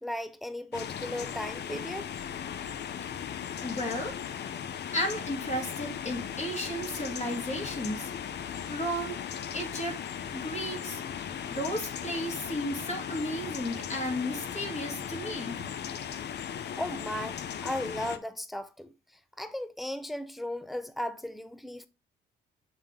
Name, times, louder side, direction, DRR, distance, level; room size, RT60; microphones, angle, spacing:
voice 1, 0.0-2.1 16.8-18.9 19.4-21.9, left 1 dB, ahead, 0.5 m, -36 dB
sound 1, 0.7-18.2, left 8 dB, 60° left, 0.7 m, -37 dB
voice 2, 3.6-4.2 4.9-8.1 8.7-9.2 9.5-10.0 10.3-11.0 11.5-15.7, equal, 35° left, 2.7 m, -33 dB
7.2 x 3.7 x 3.5 m
cardioid pair, 90°, 20 cm